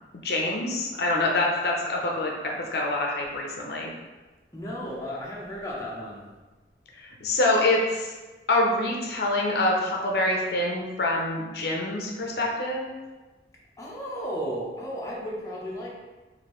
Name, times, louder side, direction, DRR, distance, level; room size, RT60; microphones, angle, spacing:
voice 1, 0.1-3.9 7.0-8.1 8.5-12.9, left 2 dB, 65° left, -1 dB, 0.6 m, -26 dB
voice 2, 4.5-6.2 13.8-15.9, equal, 15° left, -5 dB, 0.7 m, -34 dB
4.9 x 2.6 x 3.0 m, 1.2 s
head